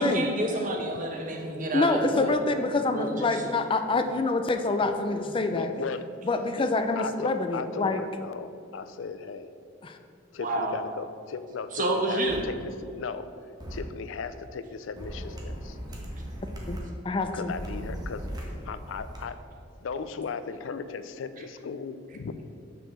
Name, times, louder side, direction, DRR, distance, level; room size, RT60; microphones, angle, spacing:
voice 1, 0.0-2.3 2.9-3.5 5.2-5.5 10.4-10.8 11.7-12.5, right 1 dB, 45° right, 1 dB, 1.1 m, -29 dB
voice 2, 1.7-5.7 6.3-8.0 9.8-10.0 16.7-16.8 17.0-17.5, left 3 dB, 25° left, 7 dB, 0.4 m, -26 dB
voice 3, 5.5-6.0 6.6-6.7 7.0-9.5 10.3-12.5 12.9-13.3 13.7-15.8 17.3-19.4 19.8-22.6, left 5 dB, 85° left, 12 dB, 0.4 m, -37 dB
sound 1, 12.3-12.4 13.6-13.8 15.0-16.8 17.5-19.2, equal, 20° right, 1.2 m, -37 dB
6.3 x 4.7 x 6.7 m, 2.4 s
head